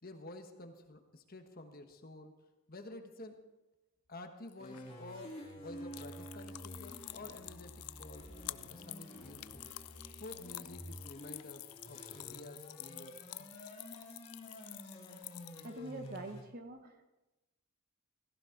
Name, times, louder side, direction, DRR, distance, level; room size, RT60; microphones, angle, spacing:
voice 1, 0.0-2.4 2.7-3.4 4.1-9.7 10.2-13.5, left 2 dB, 40° left, 5 dB, 1.3 m, -51 dB
sound 1, 4.5-16.2, left 18 dB, 85° left, 0.4 m, -49 dB
sound 2, 4.6-16.4, equal, 25° left, 3.2 m, -50 dB
voice 2, 15.6-17.0, right 2 dB, 40° right, 6 dB, 1.2 m, -45 dB
16.0 x 15.5 x 3.9 m, 1.0 s
head